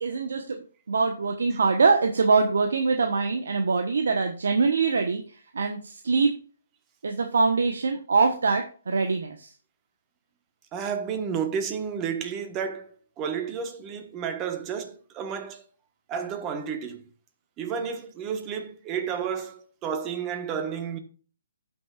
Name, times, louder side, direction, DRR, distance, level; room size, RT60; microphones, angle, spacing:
voice 1, 0.0-6.3 7.0-9.5, right 4 dB, 75° right, 1.1 m, -24 dB
voice 2, 10.7-15.6 16.1-17.0 17.6-21.0, right 7 dB, 20° right, 1.2 m, -31 dB
15.5 x 6.0 x 2.4 m
hypercardioid pair, 155°, 0 cm